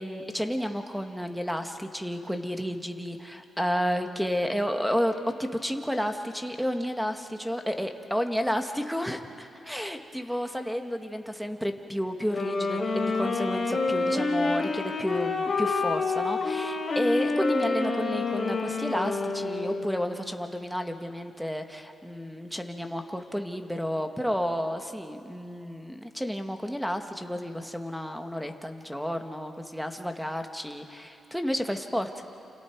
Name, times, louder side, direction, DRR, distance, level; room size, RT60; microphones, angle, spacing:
voice 1, 0.0-32.1, equal, ahead, 6 dB, 1.5 m, -31 dB
Wind instrument woodwind instrument, 12.2-19.9, left 3 dB, 45° left, 3.4 m, -28 dB
28.5 x 28.0 x 4.7 m, 2.7 s
cardioid pair, 100°, 0 cm